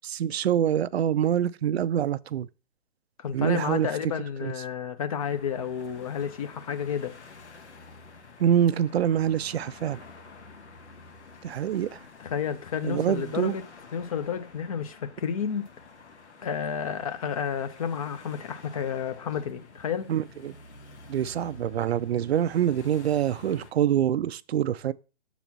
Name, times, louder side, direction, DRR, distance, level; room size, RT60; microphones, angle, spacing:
voice 1, 0.1-2.5 3.3-3.9 4.4-4.5 8.4-10.0 11.4-12.0 12.8-13.6 20.1-20.5 21.1-24.9, right 10 dB, 65° right, 0.5 m, -25 dB
voice 2, 3.2-7.1 12.2-13.6 13.9-15.7 16.4-20.1, left 7 dB, 30° left, 0.6 m, -31 dB
sound 1, 5.2-23.7, left 3 dB, 85° left, 1.5 m, -49 dB
7.1 x 4.1 x 5.9 m
hypercardioid pair, 150°, 34 cm